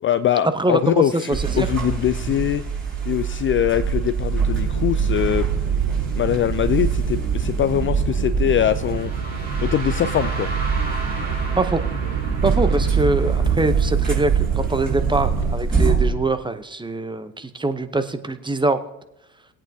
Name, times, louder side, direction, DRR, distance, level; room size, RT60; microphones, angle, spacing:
voice 1, 0.0-2.6 3.1-5.5 6.2-9.1 9.6-10.5, left 11 dB, 30° left, 12 dB, 0.4 m, -22 dB
voice 2, 0.5-1.7 11.6-11.8 12.4-18.8, right 2 dB, 10° right, 11 dB, 0.7 m, -23 dB
sound 1, 1.3-16.1, right 5 dB, 25° right, 4.0 m, -24 dB
sound 2, 4.5-15.6, right 7 dB, 65° right, 1.3 m, -27 dB
sound 3, 8.7-14.6, right 1 dB, 90° right, 4.8 m, -35 dB
18.0 x 8.8 x 2.7 m, 0.87 s
hypercardioid pair, 60°, 41 cm